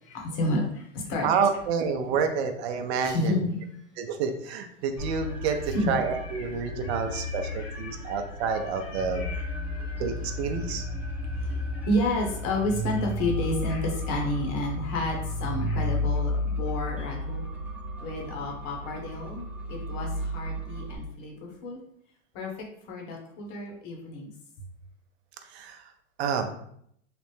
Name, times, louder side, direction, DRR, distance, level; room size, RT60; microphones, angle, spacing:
voice 1, 0.0-1.3 3.0-3.6 5.7-6.5 6.8-10.0 11.3-17.4 18.0-21.8 22.3-22.5 22.9-24.3, left 1 dB, 50° left, 0 dB, 1.0 m, -31 dB
voice 2, 1.2-3.4 4.0-9.2 10.0-10.8 25.4-25.9 26.2-26.5, right 6 dB, 60° right, 6 dB, 0.6 m, -29 dB
sound 1, 5.0-21.0, left 1 dB, 5° right, 0.5 m, -33 dB
3.3 x 2.0 x 3.1 m, 0.69 s
hypercardioid pair, 105°, 36 cm